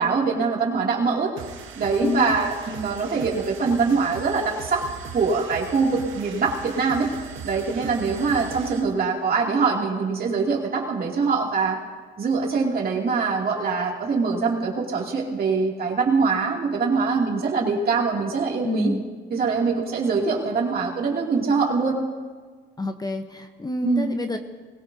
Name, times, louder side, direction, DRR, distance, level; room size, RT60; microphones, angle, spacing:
voice 1, 0.0-1.3 1.8-4.8 5.1-7.1 7.4-11.8 12.2-18.9 19.3-22.0 23.8-24.1, right 4 dB, 50° right, -2 dB, 2.7 m, -23 dB
sound 1, 1.4-8.9, right 6 dB, 85° right, 1.3 m, -39 dB
voice 2, 2.0-2.4 18.6-19.0 22.8-24.4, left 2 dB, 20° left, 6 dB, 0.9 m, -27 dB
20.5 x 17.0 x 2.8 m, 1.5 s
cardioid pair, 90°, 20 cm